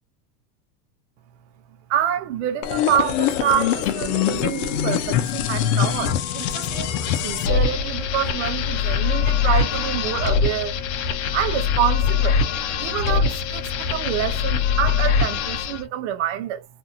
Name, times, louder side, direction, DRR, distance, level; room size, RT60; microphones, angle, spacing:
voice 1, 1.9-6.9 7.2-10.7 11.3-12.4 12.8-16.7, right 10 dB, 55° right, 0.6 m, -26 dB
sound 1, 2.6-15.8, left 7 dB, 55° left, 0.6 m, -23 dB
2.6 x 2.5 x 2.6 m
supercardioid pair, 180°, 44 cm